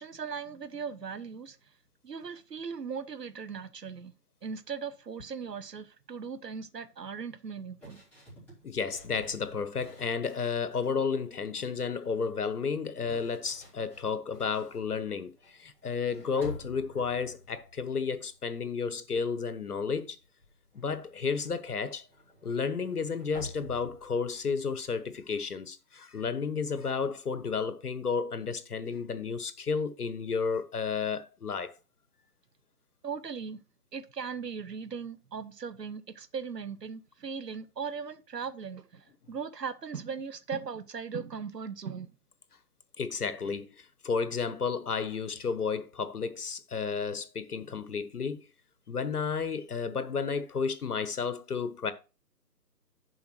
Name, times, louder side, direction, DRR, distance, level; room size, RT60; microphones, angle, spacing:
voice 1, 0.0-1.6 2.0-4.1 4.4-8.0 33.0-33.6 33.9-42.1, right 6 dB, 80° right, 1.0 m, -38 dB
sound 1, 7.8-11.0 11.4-11.8 12.7-18.9 19.2-19.6 19.9-25.4, left 2 dB, 5° left, 3.5 m, -50 dB
voice 2, 8.6-20.2 20.7-22.1 22.4-31.7 43.0-48.4 48.9-51.9, left 5 dB, 65° left, 1.2 m, -32 dB
7.0 x 5.0 x 6.0 m
figure-of-eight pair, 150°, 48 cm